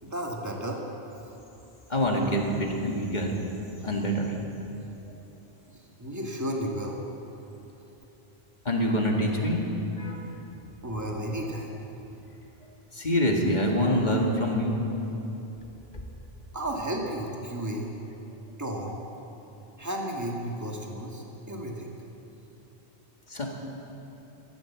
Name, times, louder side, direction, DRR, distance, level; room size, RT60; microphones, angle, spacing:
voice 1, 0.0-0.8 3.8-3.9 5.7-7.0 10.8-11.7 16.5-17.9 18.6-19.0 19.8-21.9, right 1 dB, 15° right, -1 dB, 1.8 m, -33 dB
voice 2, 1.9-3.3 3.8-4.3 8.7-9.6 10.0-10.2 12.9-14.8 23.3-23.5, equal, 45° left, 0 dB, 2.0 m, -25 dB
14.5 x 12.5 x 7.4 m, 3.0 s
omnidirectional pair, 1.0 m